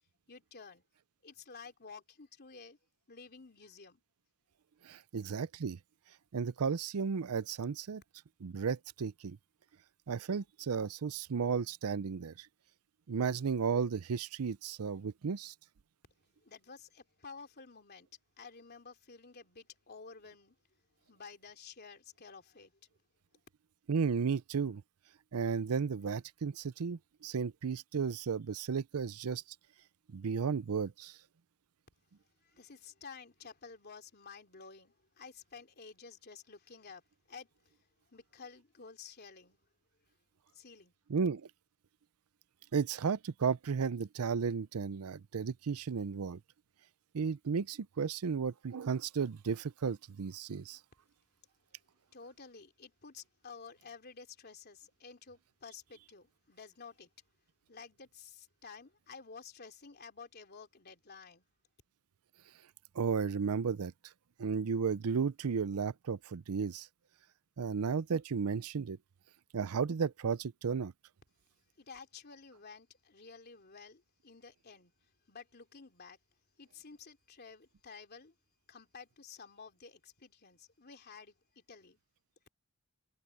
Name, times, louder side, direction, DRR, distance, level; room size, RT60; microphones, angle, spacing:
voice 1, 0.3-0.8 1.2-2.8 3.1-4.0 16.4-18.1 18.4-20.6 21.1-22.7 32.4-39.6 40.5-40.9 52.1-57.1 57.7-61.4 71.8-76.2 76.6-78.4 78.7-82.0, left 5 dB, 45° left, 3.2 m, -52 dB
voice 2, 4.8-5.8 6.3-8.0 8.4-9.4 10.1-12.5 13.1-15.5 23.9-24.8 25.3-29.4 30.1-31.2 41.1-41.4 42.7-46.4 47.1-50.8 63.0-63.9 64.4-66.9 67.6-69.0 69.5-70.9, right 6 dB, 70° right, 0.5 m, -34 dB
head